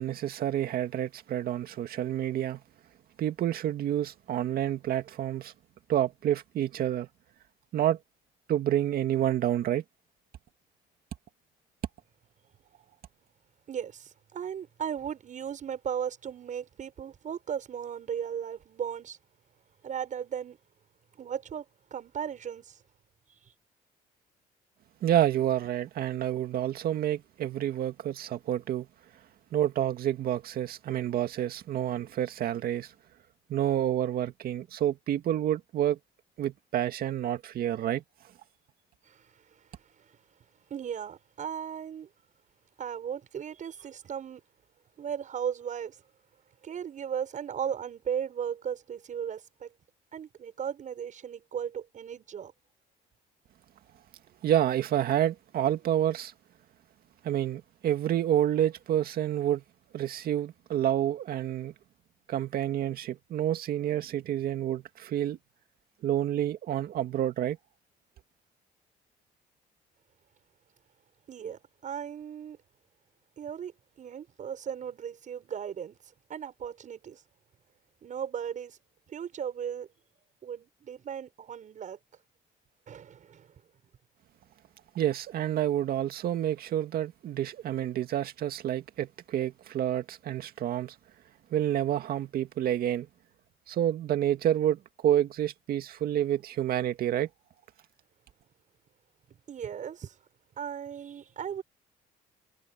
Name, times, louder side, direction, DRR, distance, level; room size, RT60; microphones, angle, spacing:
voice 1, 0.0-2.6 3.2-5.5 5.9-7.1 7.7-8.0 8.5-9.8 25.0-28.9 29.5-32.9 33.5-36.0 36.4-38.0 54.4-56.3 57.2-59.6 59.9-61.7 62.3-65.4 66.0-67.6 84.9-90.9 91.5-93.1 93.7-97.3, right 11 dB, 65° right, 2.1 m, -28 dB
voice 2, 13.7-19.2 19.8-20.6 21.2-21.6 21.9-22.8 39.1-39.2 40.7-42.1 42.8-44.4 45.0-46.0 46.6-49.7 50.1-52.5 71.3-72.6 73.4-73.7 74.0-76.0 76.3-77.2 78.0-78.8 79.1-79.9 80.4-82.0 82.9-83.5 99.5-100.1 100.6-101.6, right 8 dB, 50° right, 7.6 m, -36 dB
cardioid pair, 110°, 17 cm